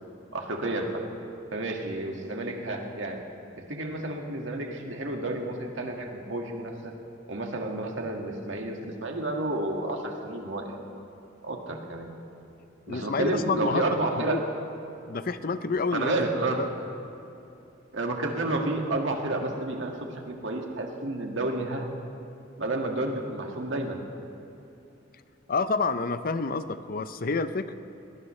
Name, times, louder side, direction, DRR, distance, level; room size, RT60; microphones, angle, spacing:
voice 1, 0.3-1.0 1.5-3.2 3.7-6.9 7.3-10.8 11.4-12.1 12.9-14.4 15.9-16.7 17.9-21.9 22.6-24.0, right 2 dB, 70° right, 1 dB, 1.9 m, -30 dB
voice 2, 12.9-13.8 14.2-14.4 15.1-16.2 16.6-16.7 25.5-27.7, left 4 dB, 50° left, 12 dB, 0.5 m, -28 dB
21.5 x 19.0 x 3.2 m, 2.7 s
head